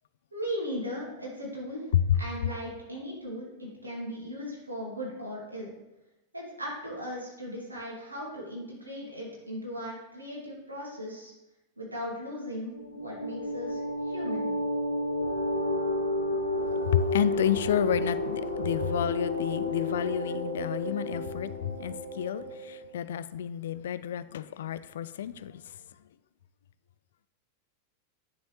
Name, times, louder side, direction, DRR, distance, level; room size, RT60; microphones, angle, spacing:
voice 1, 0.3-5.7 6.3-11.3 11.8-14.5, equal, 80° right, -4 dB, 2.5 m, -38 dB
sound 1, 12.7-23.0, left 1 dB, 80° left, 0.9 m, -31 dB
voice 2, 16.8-25.6, left 10 dB, 60° left, 15 dB, 0.3 m, -30 dB
10.0 x 6.1 x 3.2 m, 0.98 s
figure-of-eight pair, 90°, 0 cm